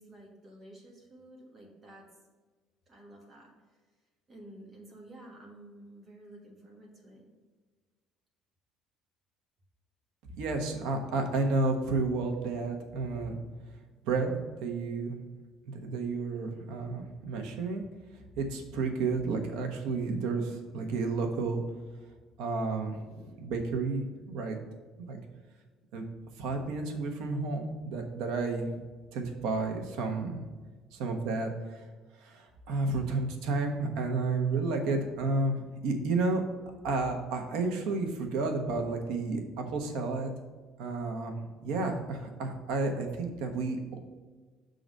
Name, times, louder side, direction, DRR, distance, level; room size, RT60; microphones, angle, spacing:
voice 1, 0.0-2.1 2.9-3.5 4.3-7.3, right 1 dB, 20° right, -2 dB, 1.5 m, -51 dB
voice 2, 10.4-13.4 14.0-14.3 14.6-15.2 15.7-17.8 18.4-21.6 22.4-24.6 25.1-25.2 25.9-26.1 26.4-28.8 29.1-30.4 30.9-31.8 32.2-36.4 36.8-40.3 40.8-44.0, right 3 dB, 80° right, 4 dB, 1.1 m, -31 dB
6.5 x 3.9 x 6.4 m, 1.4 s
cardioid pair, 175°, 0 cm